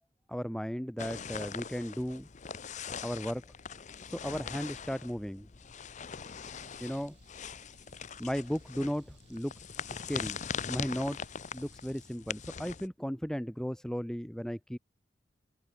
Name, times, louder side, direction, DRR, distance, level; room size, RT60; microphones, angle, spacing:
voice 1, 0.3-2.3 3.0-3.4 4.0-5.5 6.8-7.2 8.2-9.5 9.9-10.4 10.7-11.2 11.5-14.8, equal, 5° left, 0.7 m, -35 dB
sound 1, 1.0-12.9, left 6 dB, 40° left, 0.7 m, -42 dB
sound 2, 6.4-12.2, right 4 dB, 70° right, 3.9 m, -65 dB
head